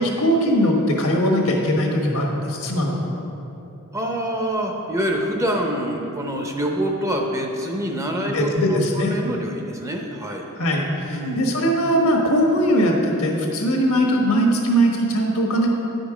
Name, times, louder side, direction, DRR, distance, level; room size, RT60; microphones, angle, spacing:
voice 1, 0.0-3.1 8.3-9.1 10.6-15.7, equal, 80° left, 0 dB, 1.4 m, -20 dB
voice 2, 3.9-10.5 11.1-11.4, equal, 15° right, 1 dB, 0.6 m, -26 dB
9.8 x 5.2 x 4.9 m, 2.9 s
head